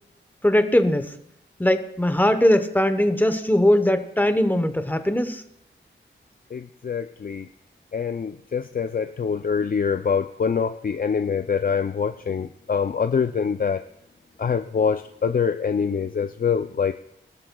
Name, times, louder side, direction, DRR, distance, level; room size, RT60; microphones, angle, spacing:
voice 1, 0.4-1.1 1.6-5.4, left 1 dB, 10° left, 9 dB, 0.9 m, -20 dB
voice 2, 6.5-7.5 7.9-13.8 14.4-16.9, left 6 dB, 45° left, 9 dB, 0.4 m, -25 dB
23.5 x 12.5 x 2.3 m, 0.75 s
wide cardioid pair, 110°, 20 cm